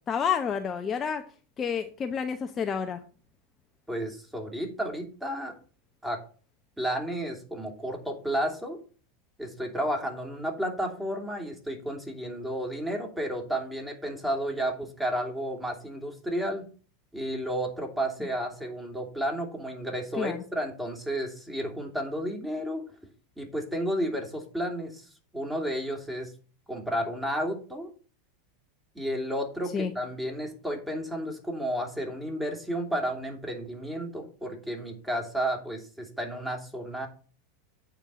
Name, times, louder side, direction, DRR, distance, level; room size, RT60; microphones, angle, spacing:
voice 1, 0.1-1.2 1.6-3.0 20.2-20.4 29.7-29.9, left 7 dB, 30° left, 6 dB, 0.8 m, -29 dB
voice 2, 3.9-5.5 6.0-6.2 6.8-8.8 9.4-16.7 17.1-22.8 23.4-25.1 25.3-26.3 26.7-27.9 28.9-37.1, equal, 5° right, 1 dB, 3.0 m, -32 dB
9.0 x 4.7 x 6.9 m, 0.40 s
figure-of-eight pair, 85°, 0 cm